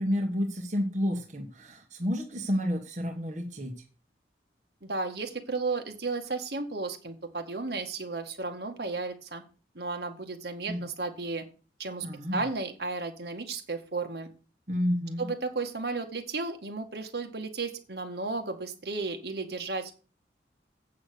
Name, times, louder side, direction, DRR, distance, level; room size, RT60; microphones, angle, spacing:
voice 1, 0.0-3.7 10.7-10.8 12.0-12.4 14.7-15.3, equal, 45° right, 2 dB, 1.5 m, -30 dB
voice 2, 4.8-9.4 9.8-11.4 11.8-12.1 12.3-14.3 15.2-20.1, right 3 dB, 65° right, 5 dB, 1.8 m, -34 dB
8.5 x 6.5 x 6.6 m, 0.35 s
head